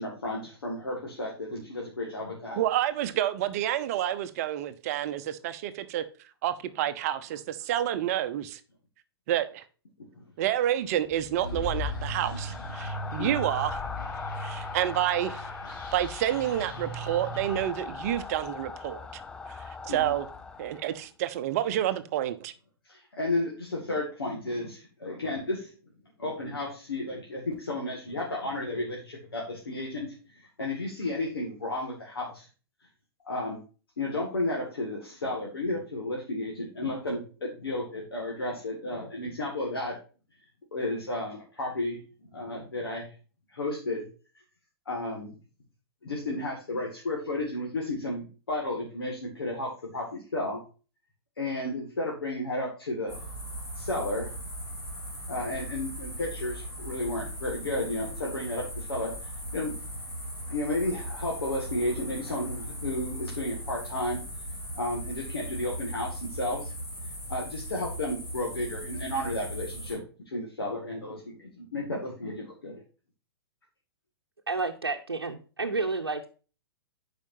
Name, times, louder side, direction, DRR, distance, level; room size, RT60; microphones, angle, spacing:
voice 1, 0.0-2.6 13.2-13.4 19.9-20.1 22.8-25.7 26.2-32.5 33.2-33.6 34.0-40.0 40.7-42.0 42.3-43.1 43.5-44.1 44.9-45.3 46.0-50.6 51.4-53.2 53.8-54.3 55.3-59.7 60.5-64.2 64.7-66.7 67.3-72.8, left 1 dB, 65° left, 2.1 m, -33 dB
voice 2, 2.6-6.0 6.4-8.6 9.3-9.6 10.4-13.8 14.4-15.5 15.9-19.0 19.8-20.3 20.6-22.5, right 12 dB, 40° right, 0.8 m, -29 dB
sound 1, 11.1-21.1, left 5 dB, 5° left, 0.3 m, -39 dB
sound 2, 11.4-17.6, right 2 dB, 50° left, 2.4 m, -38 dB
sound 3, 53.1-70.0, equal, 25° left, 4.0 m, -38 dB
voice 3, 74.5-76.3, right 3 dB, 75° right, 0.8 m, -30 dB
12.0 x 5.1 x 2.7 m
figure-of-eight pair, 110°, 13 cm